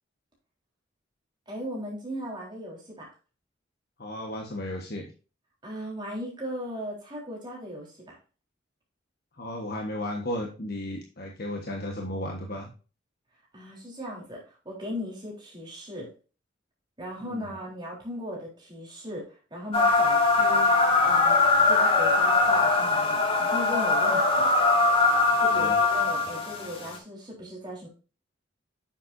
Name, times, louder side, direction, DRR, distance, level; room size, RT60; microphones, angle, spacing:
voice 1, 1.5-3.1 5.6-8.2 13.5-16.1 17.0-21.4 21.7-24.5 25.4-27.9, equal, 25° right, -3 dB, 3.7 m, -38 dB
voice 2, 4.0-5.1 9.4-12.7 17.2-17.5 25.5-25.8, left 1 dB, 55° left, 1 dB, 1.4 m, -34 dB
sound 1, 19.7-27.0, left 3 dB, 30° left, 2.1 m, -22 dB
9.1 x 7.6 x 2.7 m, 0.34 s
head